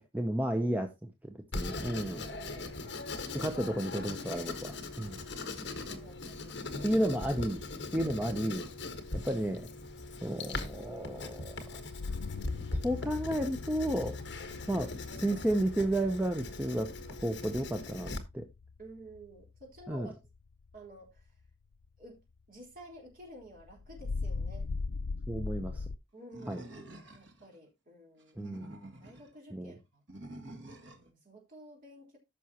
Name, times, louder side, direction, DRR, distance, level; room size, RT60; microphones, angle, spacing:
voice 1, 0.1-2.3 3.3-5.2 6.8-7.6 7.9-8.7 9.2-9.7 10.2-11.6 12.8-14.2 14.7-16.9 17.2-18.5 19.9-20.1 25.3-25.8 26.5-26.6 28.4-28.7 29.5-29.7, right 1 dB, 10° right, 0.7 m, -32 dB
Writing, 1.5-18.2, left 2 dB, 60° left, 1.5 m, -40 dB
voice 2, 2.2-3.1 5.9-7.1 8.0-8.4 18.8-20.1 20.7-21.3 22.0-22.2 22.5-24.7 26.1-26.9 27.1-28.4 29.0-30.0 30.9-32.2, right 1 dB, 45° right, 4.1 m, -52 dB
sound 1, 11.8-20.8 21.2-21.5 21.8-21.9 22.4-22.5 23.4-26.0, left 4 dB, 75° left, 0.4 m, -40 dB
Animal, 26.3-27.5 28.2-29.3 30.1-31.1, right 1 dB, 65° right, 2.0 m, -48 dB
14.0 x 6.2 x 2.9 m
head